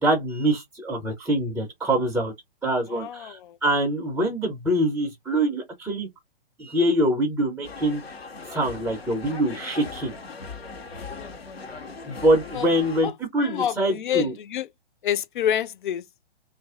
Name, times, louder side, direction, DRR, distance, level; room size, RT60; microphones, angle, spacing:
voice 1, 0.0-2.3 2.6-6.1 6.6-8.0 8.5-10.1 12.0-14.3, right 1 dB, 5° right, 0.4 m, -24 dB
voice 2, 2.9-3.6 11.1-11.4 12.5-12.7 13.0-13.1 13.4-14.7 15.0-16.0, left 10 dB, 55° left, 0.6 m, -28 dB
sound 1, 7.6-13.0, left 4 dB, 80° left, 1.1 m, -39 dB
2.8 x 2.5 x 3.5 m
figure-of-eight pair, 130°, 30 cm